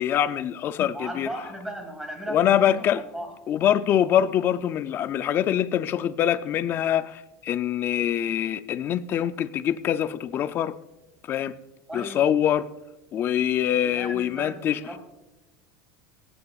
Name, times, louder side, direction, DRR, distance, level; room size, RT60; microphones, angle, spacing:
voice 1, 0.0-1.3 2.3-3.0 3.5-10.7 11.3-11.5 11.9-12.7 13.1-14.8, left 10 dB, 25° left, 0.4 m, -24 dB
voice 2, 0.9-3.3 11.9-12.2 13.8-15.0, right 1 dB, 5° right, 1.8 m, -36 dB
26.0 x 9.8 x 2.4 m
supercardioid pair, 175°, 9 cm